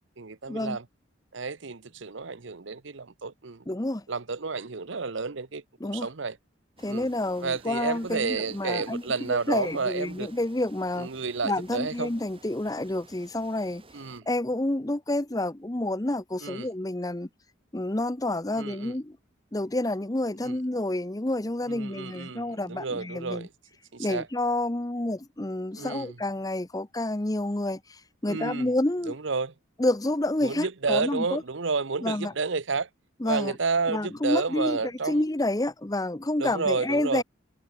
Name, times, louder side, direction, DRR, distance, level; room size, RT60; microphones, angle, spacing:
voice 1, 0.2-0.8 1.3-3.6 4.1-5.6 5.9-6.4 6.9-7.1 7.4-10.3 11.0-12.1 13.9-14.3 16.4-16.7 18.5-18.9 20.4-20.6 21.7-23.5 23.9-24.3 25.7-26.2 28.3-28.7 29.1-29.5 30.4-32.9 33.2-35.2 36.4-37.2, right 4 dB, 65° right, 0.9 m, -31 dB
voice 2, 3.7-4.0 5.8-6.1 6.8-9.0 9.3-11.1 11.4-13.8 14.3-17.3 17.7-19.2 19.5-23.5 24.0-29.1 29.8-31.4 32.0-32.3 33.2-33.5 33.9-34.8 35.1-37.2, left 1 dB, 20° left, 0.7 m, -29 dB
sound 1, 6.8-14.2, right 2 dB, 25° right, 2.5 m, -54 dB
head